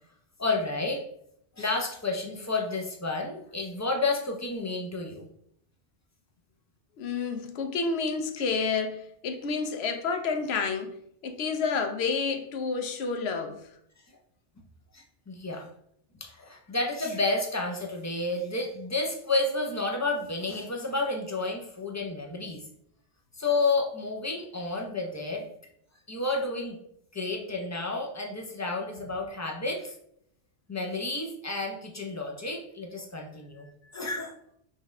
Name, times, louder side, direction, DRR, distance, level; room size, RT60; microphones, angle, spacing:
voice 1, 0.4-1.0 1.6-5.2 14.9-15.7 16.2-22.6 23.4-25.5 26.1-26.8 27.1-29.9 30.7-33.7 33.9-34.3, left 3 dB, 20° left, 0.5 m, -30 dB
voice 2, 7.0-10.9 11.2-13.7, left 5 dB, 75° left, 0.9 m, -29 dB
5.5 x 2.4 x 3.1 m
omnidirectional pair, 1.1 m